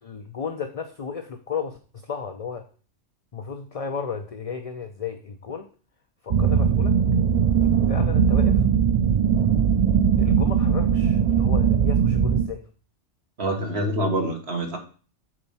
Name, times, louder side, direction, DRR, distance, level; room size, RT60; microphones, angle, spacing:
voice 1, 0.0-2.6 3.3-5.7 6.2-7.0 7.9-8.6 10.2-12.6, left 6 dB, 40° left, 6 dB, 0.6 m, -34 dB
sound 1, 6.3-12.5, right 7 dB, 80° right, 0.3 m, -20 dB
voice 2, 13.4-14.8, right 1 dB, 60° right, 3 dB, 1.8 m, -26 dB
7.6 x 4.4 x 5.6 m, 0.39 s
omnidirectional pair, 1.2 m